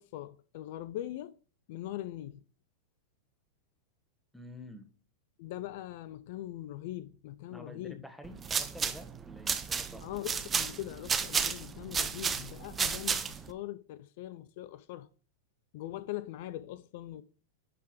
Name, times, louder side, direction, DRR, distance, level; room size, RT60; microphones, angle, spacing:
voice 1, 0.0-1.4 1.7-2.4 5.4-8.0 10.0-15.1 15.7-17.2, left 14 dB, 60° left, 0.4 m, -41 dB
voice 2, 4.3-4.9 7.5-10.1, equal, ahead, 1.4 m, -49 dB
sound 1, 8.2-13.5, right 6 dB, 20° right, 0.7 m, -32 dB
10.5 x 3.7 x 4.9 m
hypercardioid pair, 110°, 0 cm